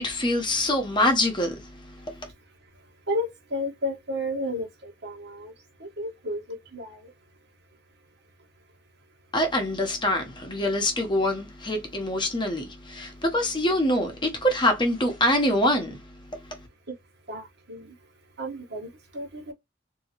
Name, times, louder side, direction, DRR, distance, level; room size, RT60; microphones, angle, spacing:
voice 1, 0.0-2.3 9.3-16.7, left 1 dB, 25° left, 0.9 m, -25 dB
voice 2, 3.1-5.5 5.8-6.4 6.7-7.0 17.3-17.9 18.4-19.5, left 1 dB, 60° right, 1.3 m, -32 dB
3.8 x 2.7 x 2.9 m
head